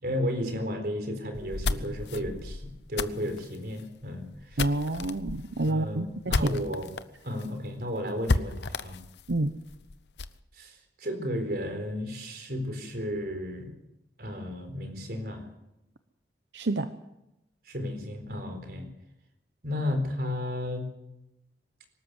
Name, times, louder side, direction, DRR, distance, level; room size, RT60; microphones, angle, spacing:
voice 1, 0.0-4.7 5.7-6.9 7.2-9.0 10.5-13.7 14.2-15.5 17.7-18.9 19.6-20.9, left 1 dB, 60° right, 6 dB, 4.1 m, -33 dB
sound 1, 1.3-7.0 7.4-7.5 7.7-7.8 8.3-10.4, left 3 dB, 80° left, 0.8 m, -32 dB
voice 2, 4.6-6.4 9.3-9.5 16.5-16.9, right 2 dB, 90° right, 9 dB, 0.9 m, -28 dB
24.0 x 13.5 x 8.0 m, 0.89 s
head